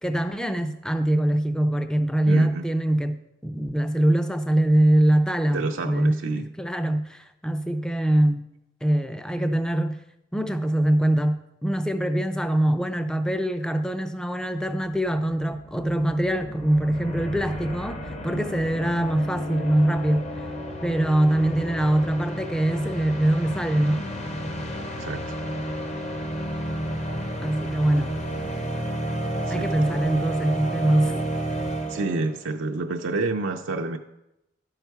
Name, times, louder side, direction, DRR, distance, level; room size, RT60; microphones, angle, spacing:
voice 1, 0.0-8.5 8.8-10.0 10.3-20.3 20.8-24.1 27.4-28.2 29.5-31.3, right 1 dB, 5° left, 0.4 m, -23 dB
voice 2, 2.3-2.6 5.5-6.4 25.0-25.2 29.5-29.7 31.9-34.0, right 3 dB, 75° right, 0.5 m, -28 dB
sound 1, 15.0-32.4, right 1 dB, 30° left, 0.7 m, -32 dB
11.5 x 5.6 x 4.6 m
head